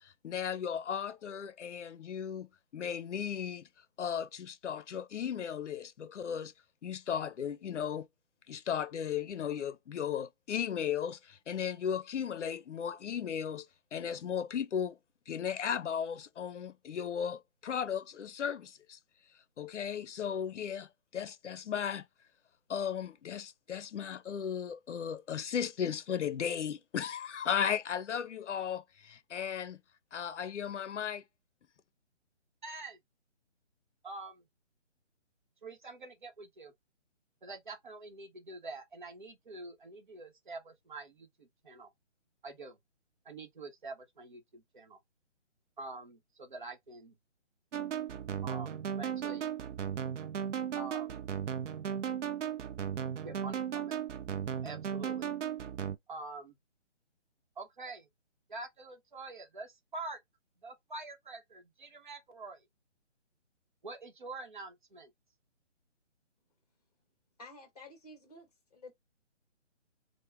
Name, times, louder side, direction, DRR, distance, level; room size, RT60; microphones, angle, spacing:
voice 1, 0.0-2.5 2.7-3.7 4.0-6.5 6.8-8.1 8.5-15.0 15.3-19.0 19.6-22.0 22.7-29.8 30.1-31.2, left 8 dB, 75° left, 0.6 m, -36 dB
voice 2, 32.6-33.0 34.0-34.4 35.6-36.7 37.4-41.9 42.4-42.8 43.2-45.0 45.8-47.2 48.4-49.5 50.7-51.2 53.2-54.0 54.6-55.3 56.1-56.6 57.6-58.1 58.5-60.2 60.6-62.7 63.8-65.1, right 3 dB, 40° right, 0.9 m, -46 dB
sound 1, 47.7-56.0, right 8 dB, 80° right, 0.6 m, -36 dB
voice 3, 67.4-68.9, left 2 dB, 35° left, 1.1 m, -51 dB
3.4 x 2.2 x 3.2 m
hypercardioid pair, 175°, 36 cm